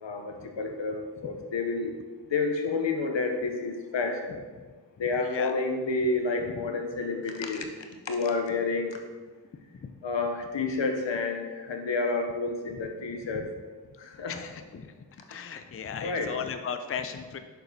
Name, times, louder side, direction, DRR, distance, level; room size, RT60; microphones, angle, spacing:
voice 1, 0.0-1.9 2.3-4.4 5.0-7.7 8.1-9.0 10.0-13.5 14.0-14.4 16.0-16.3, left 3 dB, 85° left, 4 dB, 0.8 m, -29 dB
voice 2, 5.2-5.5 6.5-6.6 9.7-9.9 12.7-13.5 14.3-14.9 15.3-17.4, left 7 dB, 35° left, 8 dB, 0.4 m, -37 dB
6.6 x 6.1 x 2.7 m, 1.4 s
wide cardioid pair, 55°, 43 cm